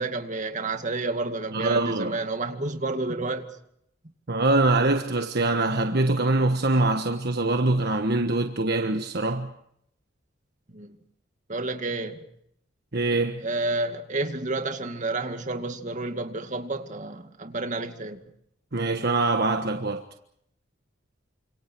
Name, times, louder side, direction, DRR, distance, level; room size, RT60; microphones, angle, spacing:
voice 1, 0.0-3.5 10.7-11.0 11.5-12.2 13.4-18.2, right 2 dB, 35° right, 2.4 m, -30 dB
voice 2, 1.5-2.2 4.3-9.5 12.9-13.4 18.7-20.0, right 2 dB, 55° right, 1.4 m, -24 dB
29.5 x 26.5 x 4.7 m
head